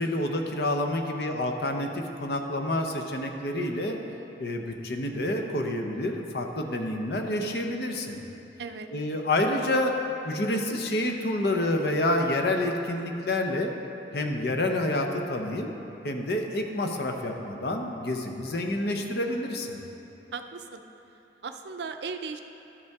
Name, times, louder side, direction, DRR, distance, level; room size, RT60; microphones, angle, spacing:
voice 1, 0.0-4.0 4.4-8.2 8.9-9.9 10.2-13.7 14.1-15.7 16.0-19.8, left 1 dB, 60° left, 3 dB, 0.7 m, -28 dB
voice 2, 20.3-20.8 21.4-22.4, right 5 dB, 70° right, 7 dB, 0.4 m, -36 dB
12.0 x 5.4 x 3.5 m, 3.0 s
head